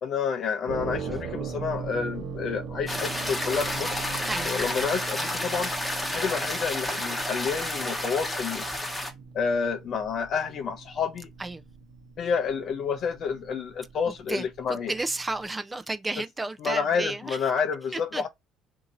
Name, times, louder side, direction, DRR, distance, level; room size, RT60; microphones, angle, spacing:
voice 1, 0.0-4.0 4.4-5.7 6.1-8.7 9.3-11.3 12.2-14.9 16.6-18.3, left 6 dB, 55° left, 0.6 m, -29 dB
sound 1, 0.7-15.5, right 5 dB, 60° right, 0.9 m, -40 dB
sound 2, 2.9-9.1, left 1 dB, 10° left, 1.0 m, -31 dB
voice 2, 14.1-17.5 17.9-18.2, right 2 dB, 15° right, 0.4 m, -33 dB
2.7 x 2.6 x 3.9 m
cardioid pair, 95°, 0 cm